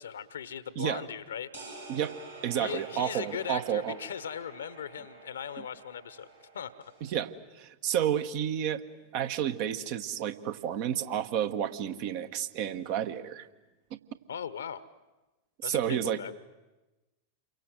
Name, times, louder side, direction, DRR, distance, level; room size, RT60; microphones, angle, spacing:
voice 1, 0.0-1.5 2.5-6.3 6.5-6.9 14.3-14.9 15.6-16.4, left 8 dB, 65° left, 16 dB, 1.2 m, -39 dB
sound 1, 1.5-7.1, right 3 dB, 90° right, 7.8 m, -48 dB
voice 2, 2.4-4.0 7.1-8.8 9.1-13.5 15.6-16.2, right 10 dB, 45° right, 9 dB, 1.3 m, -31 dB
28.5 x 24.0 x 7.8 m, 1.1 s
figure-of-eight pair, 90°, 0 cm